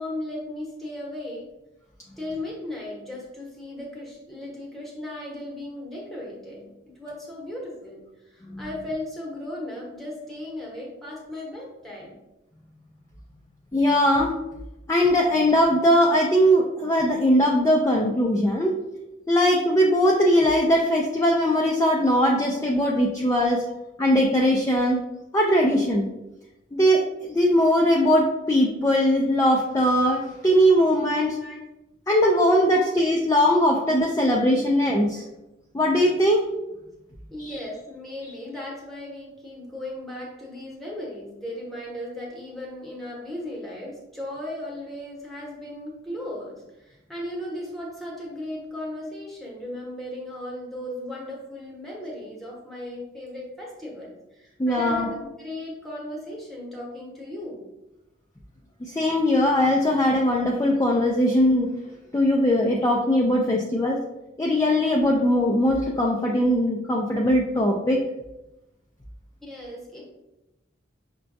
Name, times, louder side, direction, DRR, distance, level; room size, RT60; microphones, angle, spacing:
voice 1, 0.0-1.5 2.2-6.7 7.0-12.2 22.4-22.6 31.2-31.6 32.7-32.8 35.1-35.3 37.3-57.7 69.4-70.1, left 1 dB, ahead, -4 dB, 0.9 m, -36 dB
voice 2, 13.7-14.3 14.9-18.8 19.3-23.6 24.0-25.0 25.3-26.1 26.7-31.4 32.1-35.2 35.7-36.4 37.4-37.6 54.6-55.1 58.8-61.7 62.1-64.0 64.4-68.0, equal, 15° left, -2 dB, 0.3 m, -20 dB
5.6 x 2.2 x 2.6 m, 0.95 s
head